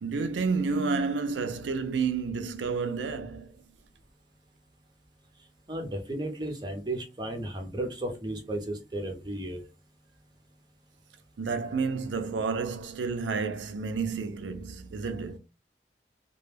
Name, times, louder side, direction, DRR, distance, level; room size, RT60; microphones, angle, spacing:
voice 1, 0.0-3.5 11.4-15.4, right 4 dB, 85° right, 0.4 m, -30 dB
voice 2, 5.7-9.6, right 1 dB, 25° right, 0.5 m, -34 dB
2.2 x 2.1 x 3.2 m
head